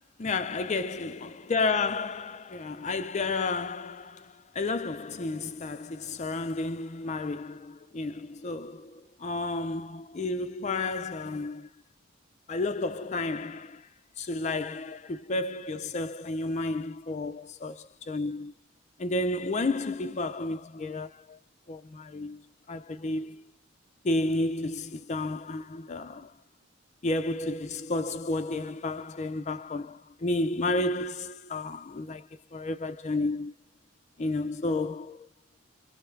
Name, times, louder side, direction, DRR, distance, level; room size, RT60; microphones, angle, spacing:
voice 1, 0.2-11.7 12.5-13.9 14.2-18.5 19.0-21.4 21.7-22.4 22.7-23.4 24.0-26.3 27.0-33.5 34.2-35.3, left 2 dB, 35° left, 0.4 m, -31 dB
3.2 x 2.2 x 3.2 m
head